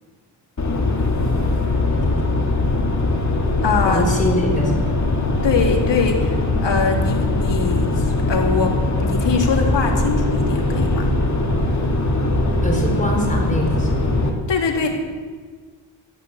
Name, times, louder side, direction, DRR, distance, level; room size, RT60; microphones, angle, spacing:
sound 1, 0.6-14.3, left 2 dB, 35° left, 2.9 m, -20 dB
voice 1, 1.9-2.4 3.8-4.9 12.6-14.1, equal, 15° left, 0 dB, 5.0 m, -24 dB
voice 2, 3.6-4.1 5.4-11.1 14.5-14.9, left 4 dB, 60° left, 1 dB, 3.5 m, -22 dB
16.0 x 10.5 x 8.1 m, 1.5 s
cardioid pair, 75°, 49 cm